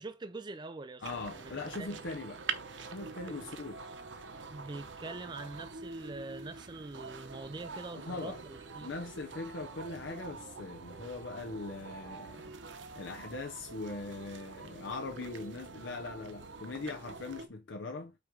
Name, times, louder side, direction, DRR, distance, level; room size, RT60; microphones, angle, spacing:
voice 1, 0.0-1.1 1.3-1.5 1.8-2.0 3.3-3.4 4.5-8.9, right 3 dB, 25° right, 0.4 m, -44 dB
voice 2, 1.0-2.4 2.8-3.9 7.9-8.4 8.8-12.4 12.9-18.1, left 3 dB, 85° left, 0.9 m, -41 dB
sound 1, 1.0-17.5, right 4 dB, 85° right, 0.9 m, -45 dB
8.5 x 3.0 x 4.6 m
head